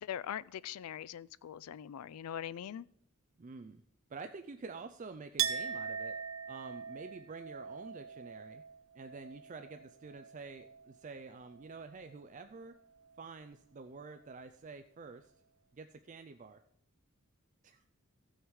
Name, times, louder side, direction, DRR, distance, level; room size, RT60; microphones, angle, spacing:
voice 1, 0.0-2.9, left 9 dB, 90° left, 0.3 m, -42 dB
voice 2, 3.4-3.8 4.1-6.2 6.5-8.6 8.9-12.8 13.2-15.3 15.7-16.6 17.6-17.9, right 4 dB, 35° right, 0.4 m, -48 dB
Chink clink, 5.4-10.9 11.2-12.1, right 8 dB, 70° right, 0.7 m, -41 dB
15.0 x 6.4 x 4.7 m
head